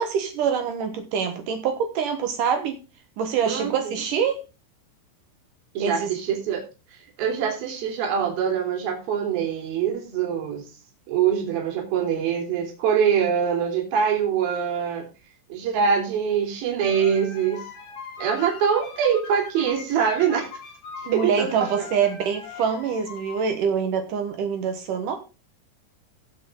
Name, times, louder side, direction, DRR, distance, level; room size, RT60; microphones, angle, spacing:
voice 1, 0.0-2.8 3.2-4.4 5.8-6.1 21.1-25.2, right 7 dB, 85° right, 1.8 m, -25 dB
voice 2, 5.7-6.6 7.2-10.6 11.1-15.0 15.5-17.6 18.2-20.5 21.1-21.5 21.8-21.9, right 7 dB, 50° right, 4.7 m, -24 dB
sound 1, 16.8-23.5, left 5 dB, 70° left, 5.8 m, -40 dB
16.0 x 7.5 x 3.8 m
omnidirectional pair, 5.8 m